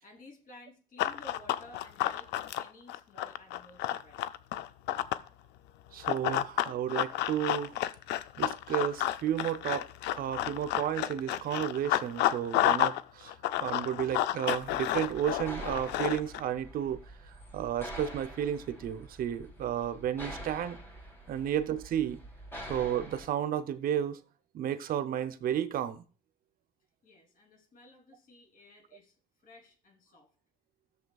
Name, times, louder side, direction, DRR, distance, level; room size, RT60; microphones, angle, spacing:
voice 1, 0.0-4.2 21.3-21.4 27.0-29.1 29.4-30.3, left 2 dB, 55° left, 3.2 m, -55 dB
Run, 1.0-5.3 6.0-13.0 13.3-16.4, left 13 dB, 85° left, 0.5 m, -30 dB
voice 2, 5.9-7.7 8.4-17.0 17.3-20.8 21.3-22.2 22.7-24.2 24.5-26.0, right 10 dB, 60° right, 0.7 m, -32 dB
sound 1, 14.5-23.3, right 1 dB, 15° left, 3.2 m, -46 dB
14.0 x 6.9 x 2.3 m
cardioid pair, 110°, 17 cm